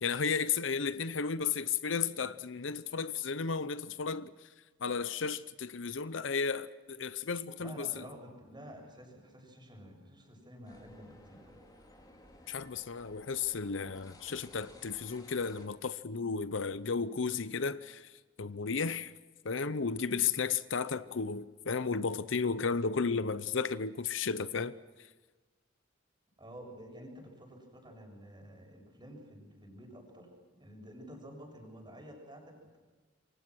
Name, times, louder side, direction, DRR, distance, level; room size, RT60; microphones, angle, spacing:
voice 1, 0.0-4.3 4.8-8.0 12.5-18.1 18.4-19.1 19.4-24.7, left 5 dB, 70° left, 0.7 m, -33 dB
voice 2, 7.6-11.6 26.4-30.3 30.6-32.8, equal, 25° right, 7.2 m, -50 dB
sound 1, 10.7-15.7, left 1 dB, 20° left, 4.2 m, -56 dB
28.0 x 24.5 x 6.3 m
head